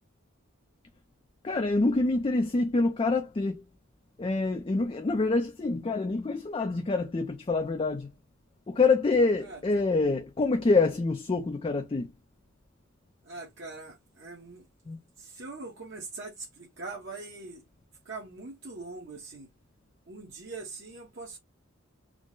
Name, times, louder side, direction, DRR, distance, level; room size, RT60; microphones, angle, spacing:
voice 1, 1.4-3.6 4.2-8.1 8.7-12.1 14.9-15.0, left 3 dB, 25° left, 0.3 m, -26 dB
voice 2, 9.4-9.8 13.2-14.6 15.2-17.6 18.0-19.5 20.1-21.4, right 3 dB, 50° right, 0.9 m, -42 dB
3.7 x 2.0 x 3.7 m
head